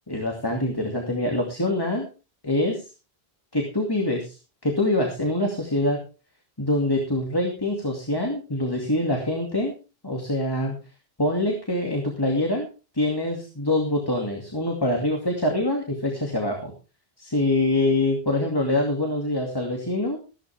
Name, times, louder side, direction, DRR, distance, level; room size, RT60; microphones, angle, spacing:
voice 1, 0.1-2.0 2.4-2.8 3.5-4.4 4.6-6.0 6.6-9.8 10.0-10.7 11.2-12.7 12.9-16.7 17.2-20.2, left 1 dB, 20° left, 1 dB, 2.4 m, -24 dB
15.0 x 12.5 x 3.5 m, 0.32 s
omnidirectional pair, 1.0 m